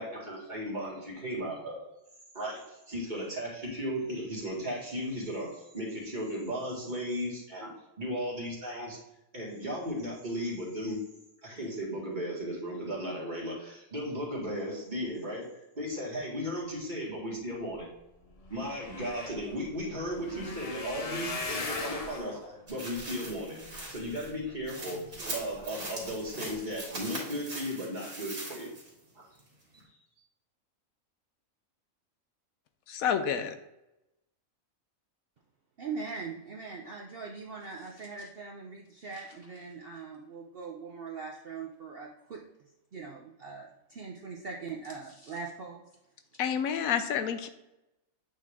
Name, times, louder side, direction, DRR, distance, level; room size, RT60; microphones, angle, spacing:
voice 1, 0.0-1.8 2.3-2.6 2.9-7.7 8.0-9.0 9.3-11.0 11.4-15.5 15.8-17.9 18.5-23.6 23.9-25.0 25.3-28.7, equal, 35° right, -4 dB, 2.0 m, -35 dB
sound 1, 17.9-18.0 18.2-24.6 25.2-25.6 26.0-26.2 26.5-26.6, left 3 dB, 35° left, 0.6 m, -40 dB
sound 2, 22.7-29.0 29.4-29.5, right 2 dB, 85° right, 2.6 m, -41 dB
voice 2, 32.9-33.5 46.4-47.5, left 8 dB, 80° left, 9 dB, 1.1 m, -29 dB
voice 3, 35.8-42.4 42.9-45.8, right 4 dB, 55° right, -1 dB, 0.8 m, -41 dB
8.3 x 3.7 x 3.6 m, 0.91 s
omnidirectional pair, 1.5 m